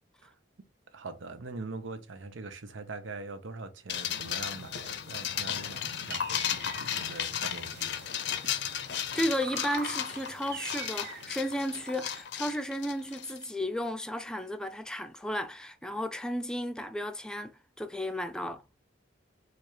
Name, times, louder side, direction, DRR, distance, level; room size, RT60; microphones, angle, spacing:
voice 1, 0.2-8.1, right 3 dB, 90° right, 0.7 m, -43 dB
sound 1, 3.9-13.4, left 9 dB, 60° left, 0.5 m, -35 dB
sound 2, 5.6-12.2, right 6 dB, 55° right, 0.7 m, -46 dB
voice 2, 9.1-18.6, equal, 5° left, 0.4 m, -33 dB
4.3 x 2.5 x 4.7 m
head